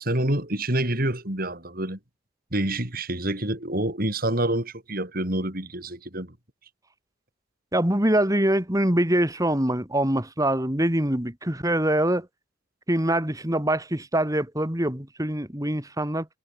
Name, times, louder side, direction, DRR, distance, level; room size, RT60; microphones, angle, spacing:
voice 1, 0.0-2.0 2.5-6.3, right 1 dB, 45° right, 4.7 m, -27 dB
voice 2, 7.7-12.3 12.9-16.3, right 1 dB, 15° right, 2.8 m, -24 dB
head